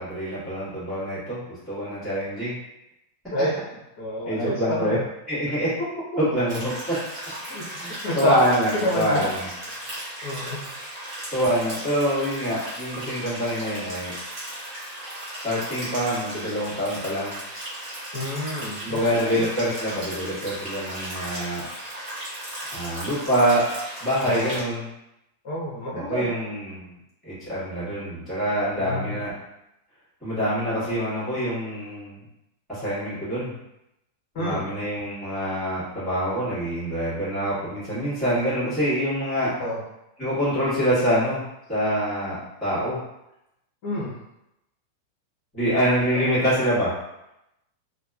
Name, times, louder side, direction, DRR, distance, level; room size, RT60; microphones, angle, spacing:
voice 1, 0.0-1.4 1.7-2.5 4.2-5.0 5.3-5.7 6.2-6.9 7.8-9.5 9.8-10.0 11.3-14.1 15.4-17.4 18.8-21.6 22.7-23.6 24.0-24.9 25.9-26.9 27.2-29.3 30.2-32.2 32.7-33.5 34.3-39.5 40.2-41.4 41.7-43.0 45.5-46.9, equal, ahead, -15 dB, 1.3 m, -25 dB
voice 2, 4.0-5.0 7.5-7.6 8.0-8.3 8.7-9.3 10.2-10.6 18.1-19.4 24.2-24.6 25.4-26.3 28.8-29.2 34.3-34.6 39.6-39.8 43.8-44.1 46.1-46.2, equal, 45° left, -6 dB, 0.7 m, -28 dB
sound 1, 6.5-24.6, right 1 dB, 20° right, 0.8 m, -36 dB
2.9 x 2.1 x 2.3 m, 0.88 s
supercardioid pair, 175°, 0 cm